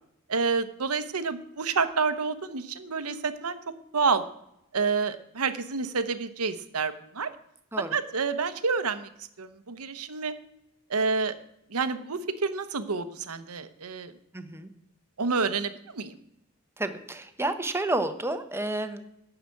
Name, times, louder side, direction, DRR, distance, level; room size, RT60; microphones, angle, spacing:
voice 1, 0.3-3.6 3.9-4.2 4.7-7.3 7.9-9.1 9.4-10.3 10.9-11.3 11.7-14.1 15.2-16.1, right 4 dB, 85° right, 11 dB, 0.9 m, -28 dB
voice 2, 14.3-14.7 16.8-19.1, right 2 dB, 10° right, 9 dB, 0.8 m, -30 dB
11.5 x 5.0 x 8.5 m, 0.80 s
head